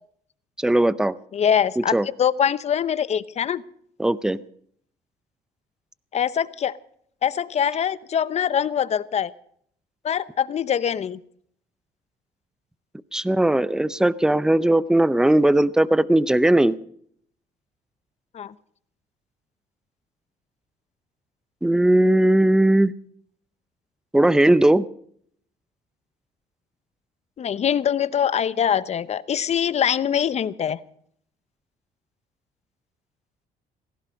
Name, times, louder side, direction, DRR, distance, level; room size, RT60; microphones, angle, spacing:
voice 1, 0.6-1.1 1.8-2.1 4.0-4.4 13.1-16.8 21.6-22.9 24.1-24.9, right 1 dB, 5° right, 18 dB, 0.6 m, -18 dB
voice 2, 1.3-1.9 2.2-3.6 6.1-6.8 7.2-9.3 10.0-11.2 18.3-18.5 27.4-30.8, left 8 dB, 40° left, 16 dB, 0.8 m, -23 dB
17.0 x 15.5 x 5.2 m, 0.65 s
cardioid pair, 110°, 17 cm